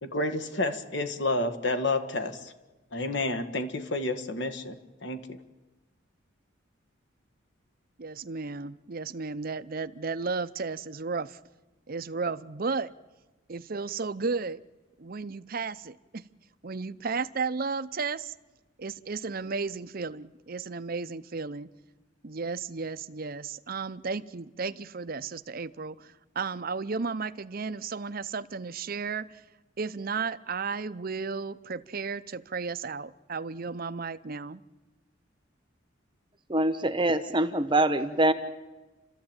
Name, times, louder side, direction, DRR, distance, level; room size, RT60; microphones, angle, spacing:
voice 1, 0.0-2.5 2.9-5.4, left 2 dB, 60° left, 9 dB, 1.6 m, -30 dB
voice 2, 8.0-11.4 11.9-12.9 13.5-14.6 15.0-16.2 16.6-18.3 18.8-21.7 22.2-29.4 29.8-34.6, right 4 dB, 45° right, 13 dB, 0.7 m, -34 dB
voice 3, 36.5-38.3, right 1 dB, 25° right, 10 dB, 0.9 m, -24 dB
30.0 x 13.5 x 8.9 m, 1.2 s
head